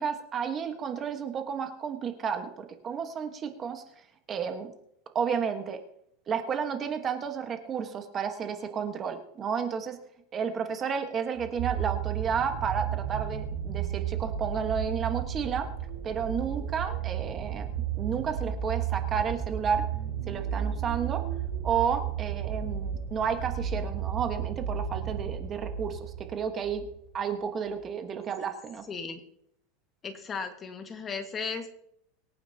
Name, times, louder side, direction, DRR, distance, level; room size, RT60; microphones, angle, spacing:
voice 1, 0.0-3.8 4.3-4.7 5.1-5.8 6.3-10.0 10.3-15.7 16.0-17.7 18.0-19.8 20.3-21.2 21.6-26.8 27.1-28.8, right 7 dB, 25° right, 6 dB, 1.3 m, -31 dB
sound 1, 11.4-27.0 27.8-27.9, right 9 dB, 70° right, 4.8 m, -33 dB
voice 2, 28.9-29.2 30.0-31.7, left 5 dB, 25° left, 6 dB, 1.6 m, -35 dB
24.5 x 9.2 x 2.8 m, 0.73 s
supercardioid pair, 145°, 0 cm